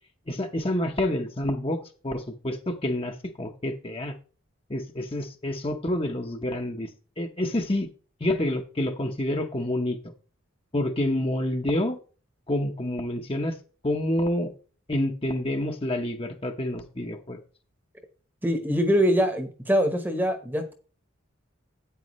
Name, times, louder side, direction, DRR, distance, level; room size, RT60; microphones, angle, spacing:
voice 1, 0.3-4.1 4.7-6.9 7.2-7.9 8.2-10.0 10.7-12.0 12.5-13.6 13.8-14.5 14.9-17.4, left 1 dB, 25° left, 3 dB, 0.9 m, -28 dB
voice 2, 18.4-20.7, equal, 10° right, 7 dB, 1.1 m, -23 dB
9.3 x 9.0 x 3.1 m, 0.37 s
head